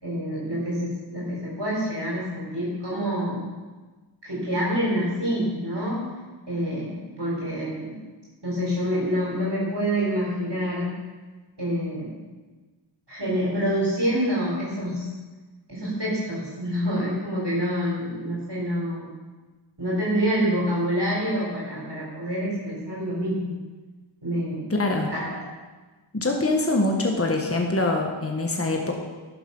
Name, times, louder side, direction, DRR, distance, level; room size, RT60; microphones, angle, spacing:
voice 1, 0.0-3.5 4.2-6.1 6.4-8.0 8.4-11.0 11.6-12.1 13.1-15.1 15.7-19.0 19.8-23.6 24.2-24.7 25.1-25.4, equal, 60° right, -6 dB, 4.2 m, -27 dB
voice 2, 24.7-25.1 26.1-28.9, left 2 dB, 30° left, 1 dB, 1.3 m, -24 dB
11.5 x 7.2 x 5.4 m, 1.3 s
wide cardioid pair, 45°, 47 cm